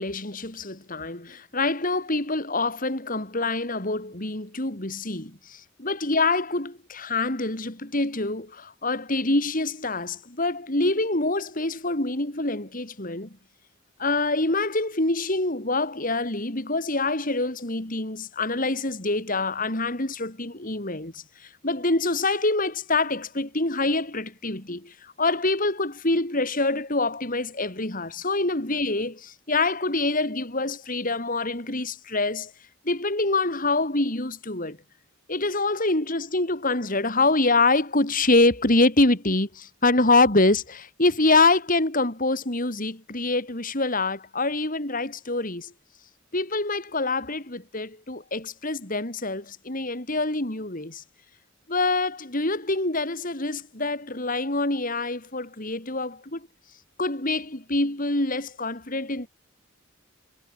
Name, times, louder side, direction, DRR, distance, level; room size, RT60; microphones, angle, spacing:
voice 1, 0.0-13.4 14.0-32.5 32.8-34.8 35.3-45.7 46.3-51.0 51.7-56.5 57.0-59.3, left 2 dB, 40° left, 3.5 m, -25 dB
head